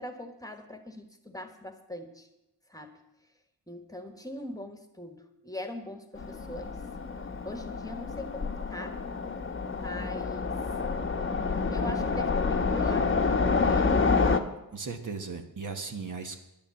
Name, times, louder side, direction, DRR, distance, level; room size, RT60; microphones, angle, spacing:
voice 1, 0.0-2.3 2.7-2.9 3.7-6.8 7.4-9.0 9.7-10.6 11.7-13.9, left 1 dB, 10° left, 6 dB, 1.3 m, -42 dB
Train, 6.2-14.4, left 4 dB, 35° left, 0.9 m, -28 dB
voice 2, 14.7-16.4, right 4 dB, 55° right, 5 dB, 1.3 m, -37 dB
10.5 x 10.5 x 7.0 m, 0.90 s
wide cardioid pair, 100°, 37 cm